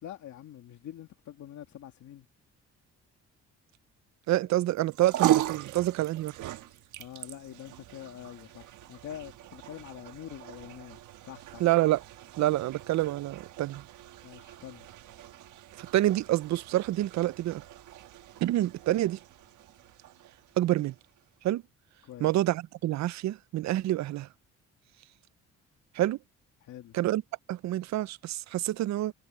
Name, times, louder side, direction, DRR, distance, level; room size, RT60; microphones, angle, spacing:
voice 1, 0.0-2.3 7.0-11.6 14.2-14.9 22.0-22.3 26.6-27.0, left 11 dB, 70° left, 2.2 m, -45 dB
voice 2, 4.3-6.3 11.6-12.0 12.4-13.8 15.8-17.6 18.4-19.2 20.6-20.9 21.4-21.6 22.2-24.3 25.9-26.2 26.9-27.2 27.5-29.1, right 15 dB, 65° right, 0.5 m, -27 dB
sound 1, 4.7-21.2, right 13 dB, 85° right, 1.3 m, -37 dB
cardioid pair, 90°, 30 cm